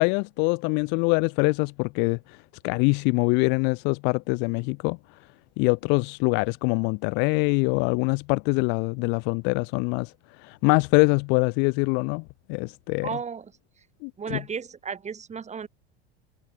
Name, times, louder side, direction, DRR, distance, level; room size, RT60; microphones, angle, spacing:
voice 1, 0.0-2.4 2.6-5.0 5.6-12.2 12.5-13.1 14.0-14.4, left 35 dB, 35° left, 0.4 m, -24 dB
voice 2, 13.0-13.5 14.2-15.7, right 6 dB, 20° right, 5.7 m, -34 dB
figure-of-eight pair, 80°, 32 cm